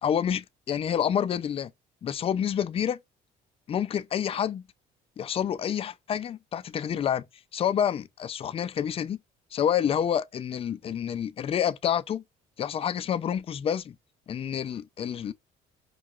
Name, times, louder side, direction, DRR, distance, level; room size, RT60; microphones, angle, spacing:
voice 1, 0.0-1.7 2.0-3.0 3.7-4.6 5.2-7.2 7.5-9.2 9.5-12.2 12.6-14.0 14.3-15.3, left 9 dB, 35° left, 0.4 m, -28 dB
4.7 x 2.2 x 2.4 m
cardioid pair, 110°, 17 cm